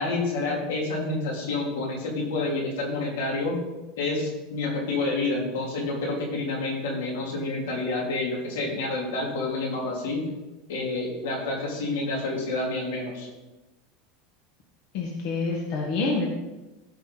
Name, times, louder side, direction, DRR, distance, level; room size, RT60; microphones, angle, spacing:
voice 1, 0.0-3.6 4.0-10.2 10.7-13.3, left 2 dB, 85° left, -2 dB, 3.5 m, -28 dB
voice 2, 14.9-16.3, left 3 dB, 55° left, -1 dB, 1.7 m, -27 dB
15.5 x 5.6 x 4.1 m, 1.1 s
supercardioid pair, 150°, 0 cm